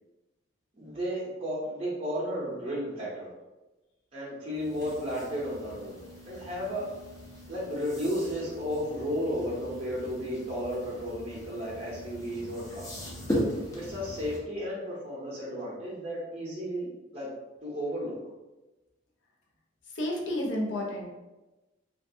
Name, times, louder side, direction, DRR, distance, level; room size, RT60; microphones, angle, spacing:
voice 1, 0.8-3.3 4.1-6.0 6.3-6.8 7.5-13.0 13.7-17.3 17.6-18.2, equal, 30° right, -6 dB, 0.6 m, -33 dB
sound 1, 4.5-14.4, equal, 15° left, 0.5 m, -38 dB
voice 2, 19.9-21.1, left 1 dB, 65° left, -1 dB, 0.5 m, -31 dB
2.5 x 2.2 x 2.5 m, 1.1 s
head